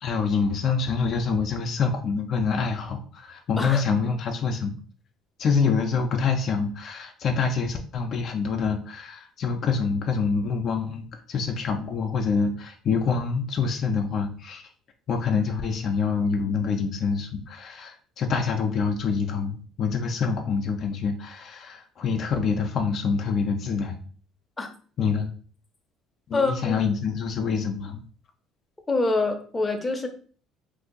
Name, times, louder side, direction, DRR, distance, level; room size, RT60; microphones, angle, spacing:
voice 1, 0.0-4.7 5.4-14.6 15.1-24.0 25.0-25.3 26.3-28.0, left 5 dB, 55° left, 3 dB, 0.5 m, -26 dB
voice 2, 26.3-26.8 28.9-30.1, left 3 dB, 20° left, 4 dB, 0.7 m, -25 dB
2.7 x 2.4 x 3.8 m, 0.43 s
supercardioid pair, 90°, 0 cm